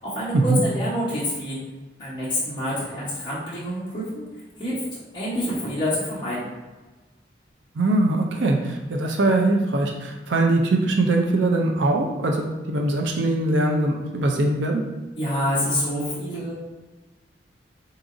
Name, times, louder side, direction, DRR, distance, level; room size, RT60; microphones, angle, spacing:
voice 1, 0.0-1.6 2.0-4.2 4.6-4.8 5.1-6.5 15.2-16.5, equal, 25° left, -10 dB, 1.0 m, -27 dB
voice 2, 7.7-14.8, right 2 dB, 85° right, 2 dB, 0.5 m, -22 dB
4.8 x 3.9 x 2.6 m, 1.2 s
head